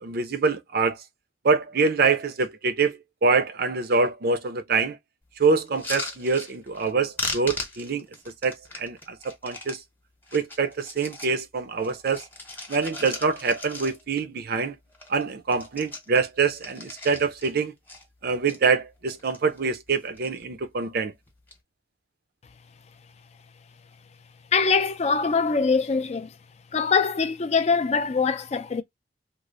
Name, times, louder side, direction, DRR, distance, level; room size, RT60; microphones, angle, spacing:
voice 1, 0.0-1.0 1.4-5.0 5.4-8.1 8.4-9.8 10.3-12.2 12.7-14.8 15.1-17.7 18.2-21.1, right 4 dB, 55° right, 0.5 m, -25 dB
sound 1, 5.7-6.9 7.2-9.8 10.2-11.4 11.8-14.2 14.6-14.7 14.9-15.2 15.5-17.5 17.9-18.6 19.1-19.6 19.9-20.4 21.3-21.6, left 2 dB, 10° left, 0.9 m, -37 dB
voice 2, 24.5-26.3 26.7-28.8, left 5 dB, 35° left, 0.4 m, -23 dB
3.1 x 2.0 x 3.7 m
head